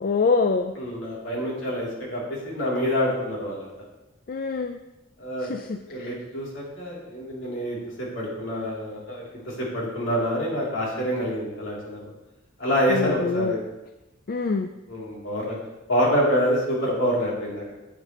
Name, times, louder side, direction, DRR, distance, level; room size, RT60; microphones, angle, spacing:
voice 1, 0.0-0.7 4.3-4.8 5.5-6.1 12.9-13.6 14.3-14.7, left 4 dB, 45° left, 7 dB, 0.4 m, -25 dB
voice 2, 0.8-3.7 5.2-5.5 5.8-12.0 12.6-13.6 14.9-15.6 15.9-17.6, equal, 70° left, -5 dB, 3.2 m, -26 dB
9.6 x 8.2 x 3.1 m, 0.99 s
head